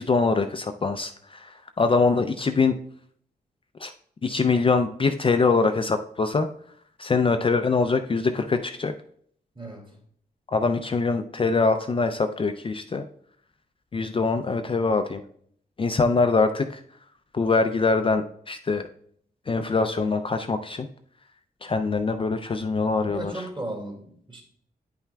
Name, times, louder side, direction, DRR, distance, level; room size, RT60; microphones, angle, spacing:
voice 1, 0.0-2.8 3.8-3.9 4.2-6.5 7.0-8.9 10.5-13.0 13.9-15.2 15.8-16.8 17.3-18.9 19.5-20.9 21.6-23.3, left 4 dB, 35° left, 0.4 m, -23 dB
voice 2, 9.5-10.0 23.1-24.4, right 1 dB, 30° right, 2.1 m, -36 dB
9.6 x 5.7 x 2.2 m
wide cardioid pair, 95°, 17 cm